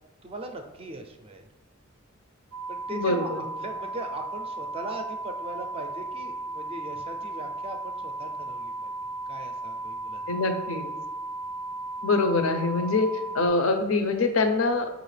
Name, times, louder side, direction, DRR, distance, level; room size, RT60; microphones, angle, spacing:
voice 1, 0.2-1.5 2.7-8.9 9.3-10.3, right 2 dB, 30° right, 5 dB, 0.4 m, -39 dB
sound 1, 2.5-13.5, right 2 dB, 90° right, 0.5 m, -35 dB
voice 2, 2.9-3.4 10.3-10.9 12.0-14.9, left 3 dB, 80° left, 7 dB, 0.5 m, -24 dB
5.4 x 2.5 x 3.2 m, 1.1 s
head